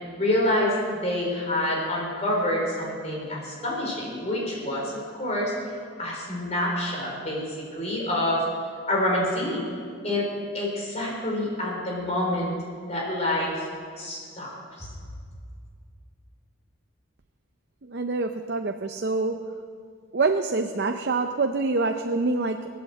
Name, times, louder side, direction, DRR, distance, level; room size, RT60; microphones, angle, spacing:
voice 1, 0.2-5.5 6.0-7.4 7.7-8.4 8.9-9.6 10.0-10.3 10.5-12.6 12.9-13.6 14.0-14.5 14.8-14.9, left 1 dB, 35° left, -3 dB, 4.1 m, -27 dB
voice 2, 17.8-19.4 20.1-22.7, right 3 dB, 50° right, 6 dB, 0.5 m, -26 dB
18.5 x 8.6 x 7.6 m, 2.2 s
head